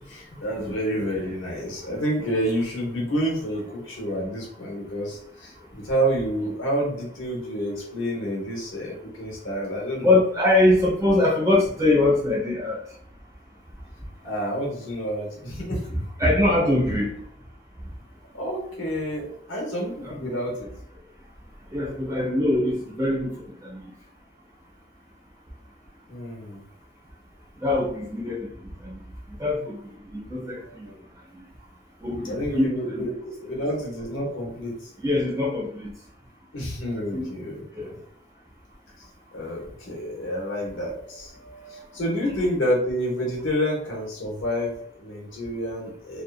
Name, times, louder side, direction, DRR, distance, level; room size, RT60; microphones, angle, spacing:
voice 1, 0.1-10.2 14.2-16.0 18.3-20.7 26.1-26.6 30.6-30.9 32.2-33.1 33.4-34.9 36.5-38.0 39.3-46.2, equal, 80° left, -1 dB, 1.0 m, -29 dB
voice 2, 10.0-12.8 15.9-17.1 20.0-20.3 21.7-23.8 27.6-29.0 29.4-29.8 30.1-30.9 32.0-33.1 35.0-35.9 36.9-37.2 37.8-37.9 42.2-42.5, left 2 dB, 15° right, -4 dB, 0.8 m, -23 dB
2.6 x 2.4 x 2.3 m, 0.69 s
head